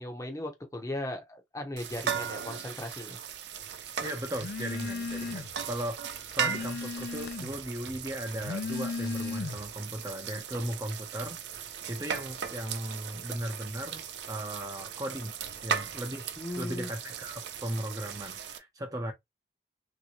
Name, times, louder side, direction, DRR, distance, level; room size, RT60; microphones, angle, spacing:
voice 1, 0.0-3.2 16.4-16.9, left 1 dB, 20° left, 0.7 m, -37 dB
sound 1, 1.8-18.6, right 7 dB, 80° right, 0.6 m, -38 dB
voice 2, 4.0-15.3 15.6-19.1, right 1 dB, 20° right, 0.6 m, -37 dB
Telephone, 4.4-5.6 6.0-7.6 8.3-9.8, left 4 dB, 70° left, 0.4 m, -36 dB
3.3 x 2.8 x 2.9 m
head